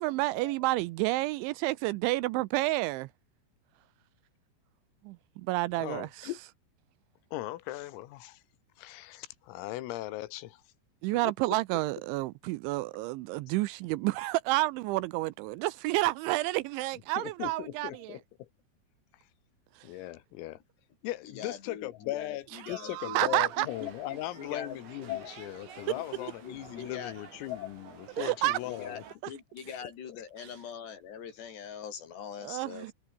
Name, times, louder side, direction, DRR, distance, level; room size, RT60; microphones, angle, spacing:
voice 1, 0.0-3.1 5.0-6.3 11.0-18.2 19.8-19.9 22.6-23.7 28.2-28.6 30.4-30.5 32.4-32.9, right 19 dB, 85° right, 2.8 m, -30 dB
voice 2, 5.8-6.4 7.3-8.4 8.8-10.6 17.2-18.5 19.1-19.3 19.8-20.6 21.0-29.0 29.7-29.8 30.1-30.2, left 16 dB, 85° left, 4.0 m, -38 dB
voice 3, 21.4-23.3 23.6-24.8 25.1-25.2 25.9-27.1 28.7-32.9, left 7 dB, 55° left, 5.6 m, -43 dB
sound 1, 23.4-29.2, right 6 dB, 60° right, 7.3 m, -51 dB
omnidirectional pair, 5.9 m